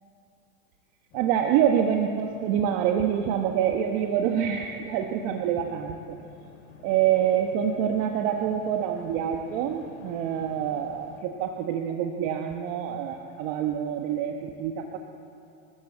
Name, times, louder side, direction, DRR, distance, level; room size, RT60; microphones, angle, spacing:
sound 1, 1.1-11.2, left 6 dB, 35° left, 2.9 m, -51 dB
voice 1, 1.1-6.2 6.8-15.0, right 9 dB, 40° right, 3 dB, 1.3 m, -26 dB
28.5 x 13.5 x 8.0 m, 2.7 s
hypercardioid pair, 130°, 42 cm